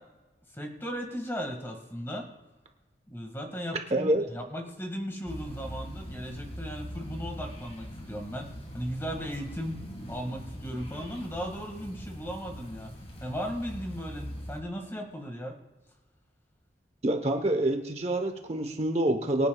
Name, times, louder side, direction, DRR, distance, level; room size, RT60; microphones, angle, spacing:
voice 1, 0.5-2.2 3.1-8.5 8.7-9.8 10.1-12.9 13.2-15.5, equal, 15° left, 3 dB, 1.9 m, -36 dB
voice 2, 3.9-4.2 17.0-19.5, right 1 dB, 35° right, 4 dB, 1.0 m, -26 dB
sound 1, 5.3-14.6, equal, 35° left, 1.8 m, -42 dB
24.0 x 9.9 x 2.4 m, 1.1 s
head